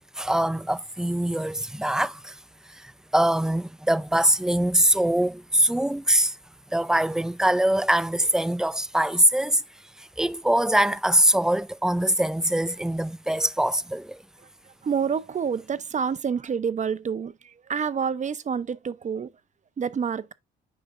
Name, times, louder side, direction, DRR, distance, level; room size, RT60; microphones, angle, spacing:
voice 1, 0.2-2.4 2.7-6.4 6.7-9.6 10.0-14.2, right 1 dB, 5° right, 0.4 m, -23 dB
voice 2, 14.6-19.3 19.8-20.3, right 6 dB, 40° right, 0.7 m, -28 dB
8.9 x 5.2 x 2.6 m
cardioid pair, 90°, 20 cm